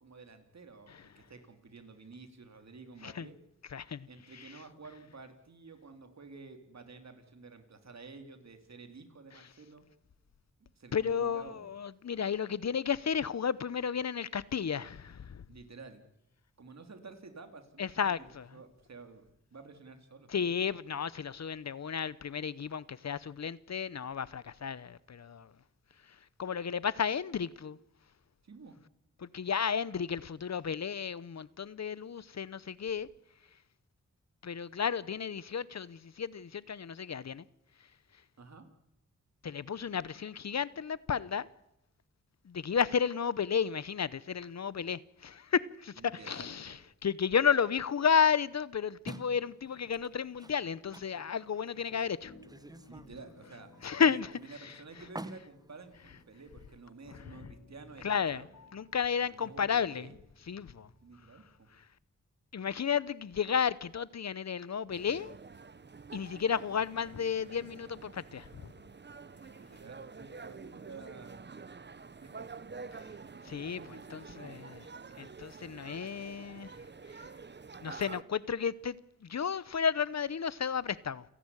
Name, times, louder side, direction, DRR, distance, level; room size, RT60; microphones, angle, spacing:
voice 1, 0.0-3.4 4.1-9.9 10.8-11.7 15.5-16.1 16.6-20.3 28.4-28.8 38.4-38.7 46.0-46.8 52.9-53.7 54.0-58.5 59.2-60.2 61.0-61.7 69.6-71.4 72.2-73.0 73.8-74.7, right 4 dB, 60° right, 3.3 m, -51 dB
voice 2, 3.7-4.1 10.9-15.4 17.8-18.5 20.3-25.5 26.4-27.8 29.2-33.1 34.4-37.4 39.4-41.5 42.5-45.9 46.3-46.8 47.0-52.3 53.8-54.3 58.0-58.4 58.7-60.0 60.5-60.9 62.5-65.3 66.1-68.7 73.4-73.8 74.1-74.8 75.2-76.7 77.8-79.0 79.2-81.2, left 7 dB, 60° left, 0.8 m, -32 dB
sound 1, 49.1-56.8, right 2 dB, 10° right, 0.9 m, -51 dB
sound 2, 52.2-61.8, left 2 dB, 80° left, 3.8 m, -60 dB
sound 3, 64.9-78.2, right 4 dB, 35° right, 0.9 m, -48 dB
29.0 x 11.5 x 9.8 m
wide cardioid pair, 80°, 31 cm